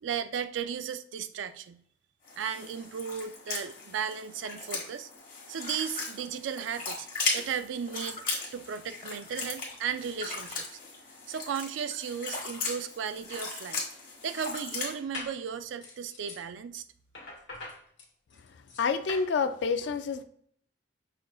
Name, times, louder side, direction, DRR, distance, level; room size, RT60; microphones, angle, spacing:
voice 1, 0.0-1.8 2.4-5.1 5.5-7.1 7.3-8.2 8.5-10.8 11.3-13.8 14.2-16.8, right 7 dB, 80° right, 11 dB, 0.3 m, -35 dB
sound 1, 2.3-14.9, left 4 dB, 45° left, 1.4 m, -37 dB
sound 2, 13.2-13.3 13.7-14.3 14.9-15.4 15.8-16.4 17.1-19.3, left 2 dB, 90° left, 1.2 m, -43 dB
voice 2, 18.8-20.2, left 5 dB, 65° left, 10 dB, 0.3 m, -28 dB
5.6 x 2.4 x 2.3 m, 0.64 s
head